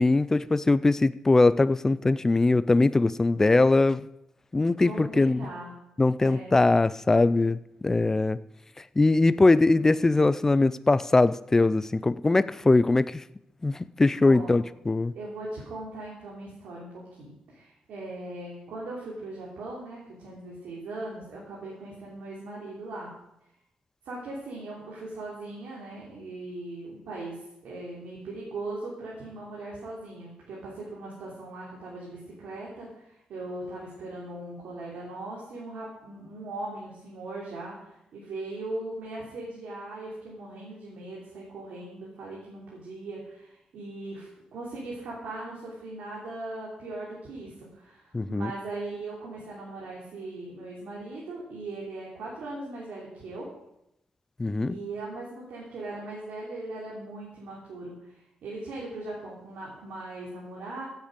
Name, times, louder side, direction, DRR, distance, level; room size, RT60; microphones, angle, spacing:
voice 1, 0.0-4.1 4.5-5.4 6.0-8.4 9.0-13.2 13.6-15.1 48.1-48.5 54.4-54.7, left 2 dB, 20° left, 0.4 m, -21 dB
voice 2, 4.8-5.7 6.2-6.5 9.7-9.8 14.2-14.6 15.1-23.1 24.0-53.5 54.6-60.8, right 2 dB, 90° right, 3.2 m, -39 dB
16.0 x 8.1 x 5.2 m
cardioid pair, 125°, 2 cm